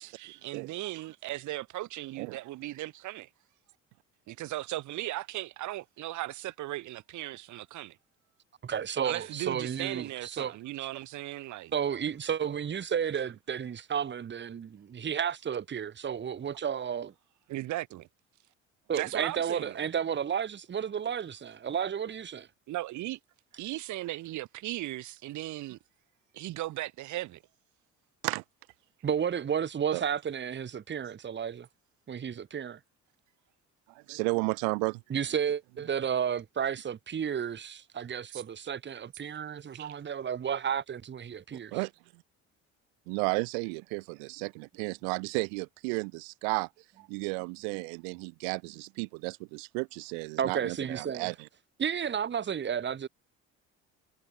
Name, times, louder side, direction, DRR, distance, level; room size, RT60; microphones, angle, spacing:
voice 1, 0.0-3.3 4.3-8.0 9.0-11.7 17.5-18.1 19.0-19.8 22.7-23.2 23.5-25.8 26.3-27.4 38.3-38.4 39.7-39.9, right 16 dB, 65° right, 1.5 m, -37 dB
voice 2, 8.6-10.6 11.7-17.1 18.9-22.5 29.0-31.7 32.1-32.8 35.1-41.8 50.4-51.3 51.8-53.1, right 8 dB, 35° right, 1.5 m, -32 dB
voice 3, 33.9-35.0 41.7-41.9 43.1-46.7 47.0-51.5, right 40 dB or more, 90° right, 1.5 m, -33 dB
supercardioid pair, 80°, 31 cm